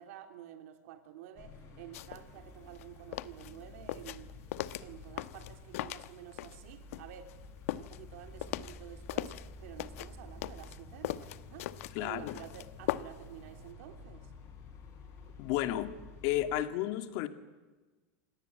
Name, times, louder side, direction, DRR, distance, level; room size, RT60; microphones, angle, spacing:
voice 1, 0.0-4.3 4.8-7.3 7.7-11.7 12.0-14.3, right 11 dB, 70° right, 6 dB, 3.1 m, -50 dB
sound 1, 1.4-16.6, left 2 dB, 40° left, 7.1 m, -51 dB
sound 2, 1.9-2.2 2.6-6.6 6.9-9.5 9.8-13.3 13.6-13.7, left 14 dB, 70° left, 1.0 m, -39 dB
voice 2, 11.9-12.3 15.4-15.9 16.2-17.3, left 13 dB, 55° left, 9 dB, 2.2 m, -32 dB
27.5 x 18.0 x 9.5 m, 1.3 s
supercardioid pair, 130°, 8 cm